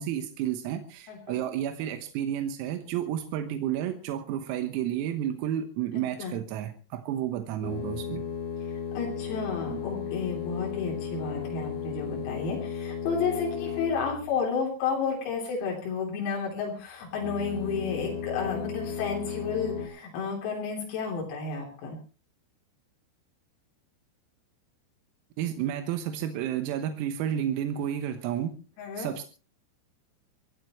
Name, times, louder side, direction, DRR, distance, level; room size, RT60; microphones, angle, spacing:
voice 1, 0.0-8.2 9.7-9.8 25.4-28.6 29.0-29.2, right 10 dB, 85° right, 7 dB, 3.9 m, -31 dB
voice 2, 1.1-1.4 6.2-6.4 9.0-22.0 28.8-29.1, left 5 dB, 85° left, -1 dB, 6.2 m, -32 dB
sound 1, 7.6-14.4 17.1-19.9, left 7 dB, 55° left, 5.9 m, -35 dB
24.0 x 15.5 x 3.1 m, 0.36 s
omnidirectional pair, 6.0 m